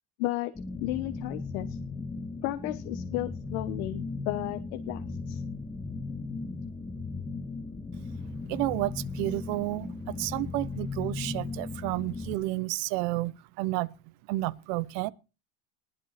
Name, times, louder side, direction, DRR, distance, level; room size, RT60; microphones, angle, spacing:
voice 1, 0.2-0.5 0.8-1.8 2.4-5.4, left 16 dB, 90° left, 1.4 m, -33 dB
sound 1, 0.5-12.4, left 3 dB, 10° left, 1.5 m, -37 dB
voice 2, 8.5-13.9 14.2-15.1, right 18 dB, 70° right, 1.0 m, -31 dB
20.5 x 8.7 x 4.3 m
cardioid pair, 170°, 43 cm